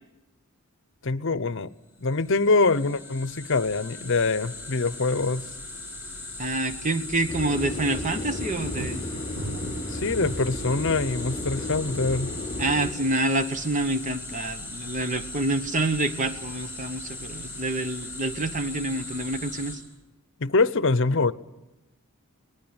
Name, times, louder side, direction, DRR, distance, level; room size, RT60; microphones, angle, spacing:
voice 1, 1.0-1.7 2.0-5.5 9.9-12.3 20.4-21.3, left 3 dB, 60° left, 0.8 m, -24 dB
sound 1, 2.0-19.8, left 2 dB, 10° right, 6.9 m, -39 dB
voice 2, 6.4-9.0 12.6-19.8, right 2 dB, 35° right, 1.2 m, -27 dB
sound 2, 7.3-12.9, left 1 dB, 25° left, 3.1 m, -34 dB
sound 3, 8.8-10.7 11.4-11.8, right 4 dB, 75° right, 0.9 m, -38 dB
25.0 x 19.5 x 8.8 m
head